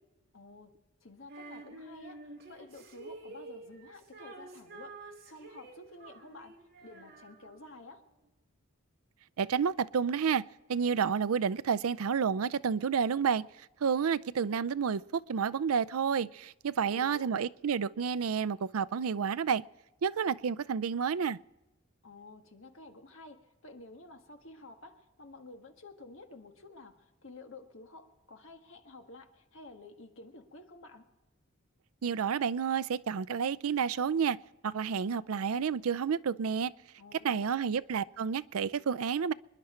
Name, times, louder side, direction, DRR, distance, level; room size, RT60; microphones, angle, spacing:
voice 1, 0.3-0.7 1.0-8.1 16.8-17.3 22.0-31.1 37.0-37.5, left 2 dB, 65° left, 1.6 m, -51 dB
Female singing, 1.3-7.8, right 2 dB, 50° right, 2.9 m, -49 dB
voice 2, 9.4-10.4 10.7-13.4 13.8-19.6 20.0-21.4 32.0-34.4 34.6-36.7 37.2-39.3, right 6 dB, 90° right, 0.5 m, -30 dB
27.0 x 11.0 x 4.4 m
head